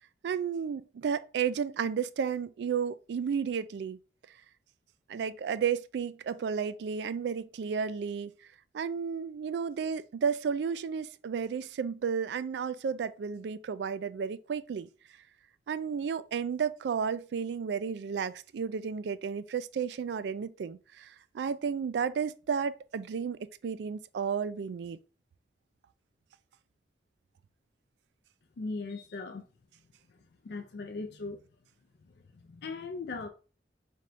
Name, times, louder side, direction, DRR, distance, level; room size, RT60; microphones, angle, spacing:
voice 1, 0.2-4.0 5.1-8.3 8.7-14.9 15.7-25.0, right 6 dB, 75° right, 0.3 m, -32 dB
voice 2, 28.6-29.4 30.4-31.4 32.5-33.3, left 3 dB, 65° left, 0.4 m, -38 dB
3.5 x 2.5 x 4.2 m
head